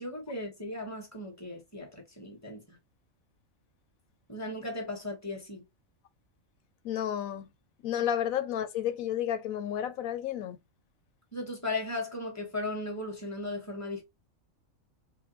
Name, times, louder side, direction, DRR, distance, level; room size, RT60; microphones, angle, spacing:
voice 1, 0.0-2.6 4.3-5.6 11.3-14.0, left 2 dB, 10° left, 1.4 m, -36 dB
voice 2, 6.8-7.5 7.8-10.6, left 10 dB, 85° left, 1.1 m, -31 dB
6.6 x 2.2 x 3.0 m
omnidirectional pair, 1.4 m